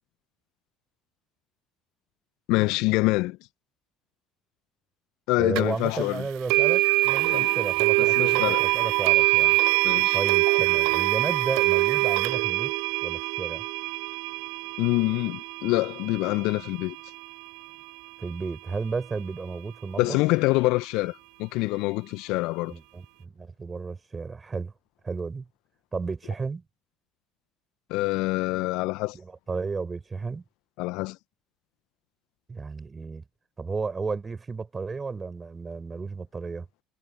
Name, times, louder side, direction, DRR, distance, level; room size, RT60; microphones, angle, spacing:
voice 1, 2.5-3.4 5.3-6.2 7.3-7.5 8.0-8.6 9.8-10.2 14.8-17.0 20.0-22.7 27.9-29.2 30.8-31.2, left 22 dB, 65° left, 1.5 m, -26 dB
voice 2, 5.4-9.6 10.1-12.7 13.0-13.6 18.2-20.2 22.7-24.7 25.0-25.5 25.9-26.6 29.1-30.4 32.5-33.2 33.6-36.7, right 4 dB, 25° right, 5.6 m, -33 dB
sound 1, 5.5-5.6 6.5-17.5, right 28 dB, 65° right, 0.4 m, -24 dB
figure-of-eight pair, 60°, 0 cm